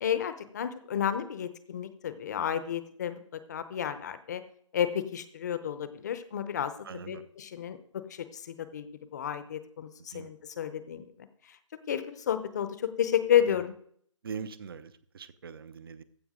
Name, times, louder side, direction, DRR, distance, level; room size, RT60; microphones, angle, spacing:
voice 1, 0.0-4.4 4.7-6.7 7.1-8.9 9.1-11.0 11.9-13.7, left 9 dB, 35° left, 12 dB, 0.8 m, -31 dB
voice 2, 6.8-7.3 10.0-10.3 13.5-13.6 14.2-16.0, right 6 dB, 45° right, 15 dB, 0.7 m, -42 dB
15.0 x 5.1 x 5.1 m, 0.63 s
figure-of-eight pair, 155°, 16 cm